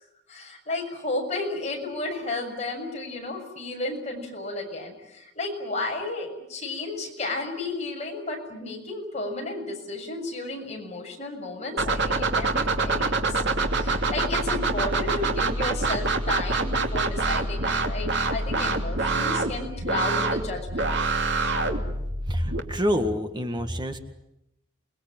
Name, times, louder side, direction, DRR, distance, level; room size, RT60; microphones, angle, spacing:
voice 1, 0.3-21.0, left 2 dB, 35° left, 1 dB, 6.9 m, -33 dB
sound 1, 11.8-22.6, right 3 dB, 60° right, 2.8 m, -26 dB
voice 2, 22.3-24.0, equal, 20° right, 6 dB, 1.8 m, -27 dB
29.0 x 21.0 x 9.0 m, 0.86 s
head